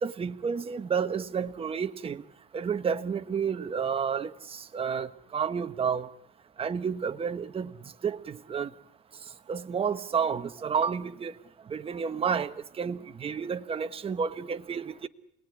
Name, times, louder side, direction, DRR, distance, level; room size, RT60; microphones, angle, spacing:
voice 1, 0.0-2.2 2.5-6.1 6.6-7.7 8.0-8.7 9.5-11.3 11.7-15.1, right 6 dB, 35° right, 1.2 m, -30 dB
27.5 x 19.5 x 9.8 m
cardioid pair, 110°, 17 cm